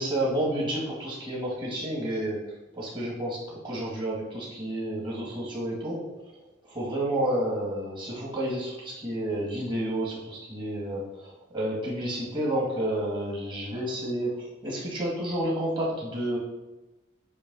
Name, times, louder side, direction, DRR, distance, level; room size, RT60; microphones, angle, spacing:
voice 1, 0.0-6.1 6.6-16.4, right 1 dB, 25° right, -5 dB, 2.2 m, -30 dB
8.6 x 3.3 x 5.5 m, 1.1 s
head